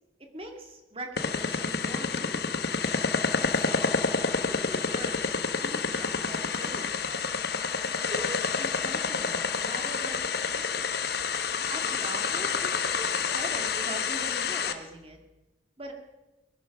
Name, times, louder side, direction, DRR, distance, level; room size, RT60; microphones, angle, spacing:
voice 1, 0.3-2.7 3.4-7.3 7.9-10.9 11.7-15.2 15.8-15.9, right 1 dB, 30° right, 4 dB, 2.2 m, -42 dB
sound 1, 1.2-14.7, left 5 dB, 60° left, 1.1 m, -29 dB
21.0 x 10.5 x 6.1 m, 1.1 s
head